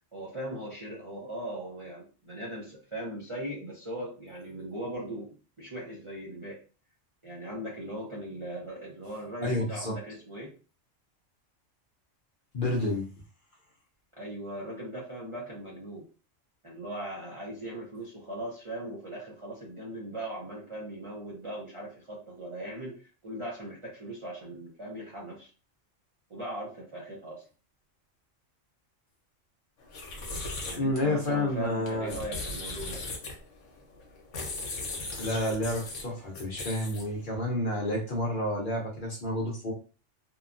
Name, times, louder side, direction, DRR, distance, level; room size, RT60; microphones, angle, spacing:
voice 1, 0.1-6.6 7.2-10.5 14.2-16.1 16.6-25.5 26.3-27.4 30.7-33.0, right 1 dB, 35° right, -6 dB, 0.5 m, -39 dB
voice 2, 9.4-10.0 12.5-13.1 30.7-32.2 35.1-39.7, left 1 dB, 50° left, -1 dB, 0.7 m, -30 dB
sound 1, 29.8-37.2, left 2 dB, 70° left, 1.0 m, -39 dB
2.8 x 2.2 x 2.4 m, 0.36 s
omnidirectional pair, 1.3 m